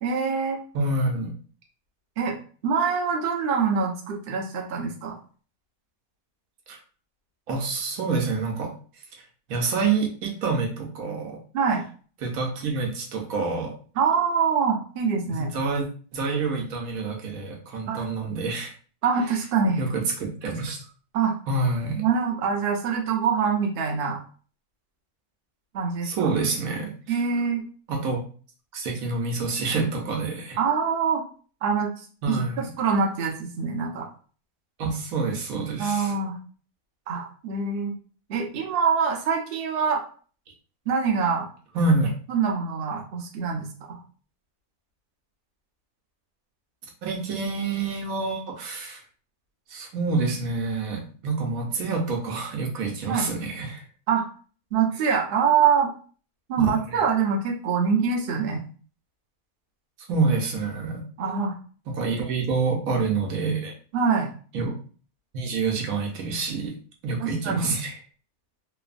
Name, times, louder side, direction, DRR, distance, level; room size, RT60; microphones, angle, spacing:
voice 1, 0.0-0.6 2.2-2.3 2.6-5.1 11.5-11.8 14.0-15.5 17.9-18.1 19.0-19.8 21.1-21.3 22.0-24.2 25.7-26.3 27.1-27.6 30.6-31.2 31.6-34.1 35.8-36.4 37.1-37.9 38.3-40.0 40.9-41.5 42.3-44.0 53.1-53.3 54.1-54.3 54.7-55.9 56.5-58.6 61.2-61.6 63.9-64.3 67.2-67.8, right 6 dB, 60° right, 0 dB, 0.6 m, -24 dB
voice 2, 0.7-1.3 6.7-6.8 7.5-8.7 9.5-11.4 12.2-13.7 15.3-15.9 16.1-18.7 19.8-20.9 21.5-22.0 26.0-27.2 27.9-28.2 28.7-30.6 32.2-32.7 34.8-36.1 41.7-42.1 47.0-49.0 49.7-53.8 56.6-57.0 60.1-61.0 61.9-63.7 64.5-64.8 65.3-66.7 67.0-68.0, right 3 dB, 75° right, 1 dB, 1.1 m, -27 dB
3.1 x 2.0 x 2.4 m, 0.40 s
omnidirectional pair, 1.6 m